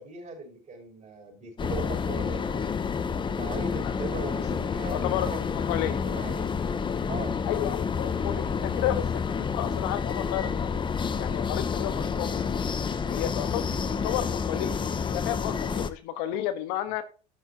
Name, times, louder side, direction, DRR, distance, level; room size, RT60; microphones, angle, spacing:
voice 1, 0.0-2.6 3.3-6.5 7.1-7.4 12.2-12.4 13.7-14.2, right 3 dB, 35° right, 2 dB, 5.6 m, -40 dB
sound 1, 1.6-15.9, left 6 dB, 25° left, 0.8 m, -29 dB
voice 2, 4.8-5.3 5.7-6.0 7.5-9.2 9.5-10.7 11.2-12.5 13.1-14.7 15.1-17.0, left 12 dB, 75° left, 9 dB, 1.4 m, -32 dB
13.0 x 7.0 x 2.9 m, 0.35 s
supercardioid pair, 100°, 21 cm